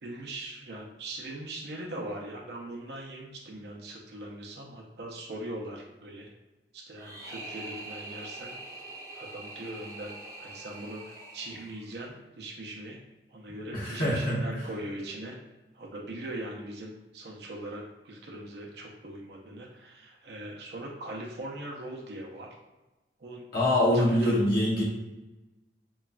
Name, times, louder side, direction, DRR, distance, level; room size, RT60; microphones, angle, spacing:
voice 1, 0.0-6.3 6.7-8.5 9.1-13.0 13.3-15.3 15.7-22.5 23.2-23.4 23.8-24.3, right 1 dB, 70° right, -1 dB, 0.5 m, -40 dB
sound 1, 7.0-12.1, right 2 dB, 20° right, 0.4 m, -44 dB
voice 2, 13.7-14.4 23.5-24.8, left 1 dB, 55° left, -7 dB, 1.0 m, -24 dB
3.0 x 2.2 x 2.4 m, 1.1 s
head